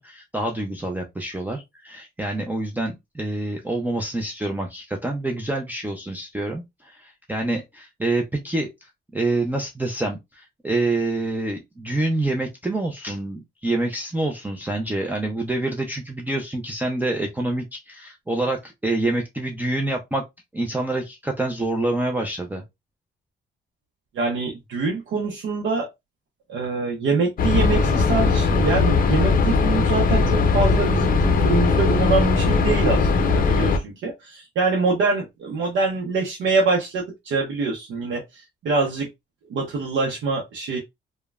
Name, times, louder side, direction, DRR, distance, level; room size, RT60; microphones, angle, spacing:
voice 1, 0.0-8.7 9.1-20.2 20.5-22.6, right 2 dB, 10° right, 0.5 m, -27 dB
voice 2, 24.1-25.9 26.5-39.1 39.5-40.8, right 4 dB, 70° right, 0.7 m, -24 dB
sound 1, 27.4-33.8, left 4 dB, 45° left, 0.6 m, -19 dB
3.0 x 2.2 x 2.3 m
cardioid pair, 90°, 20 cm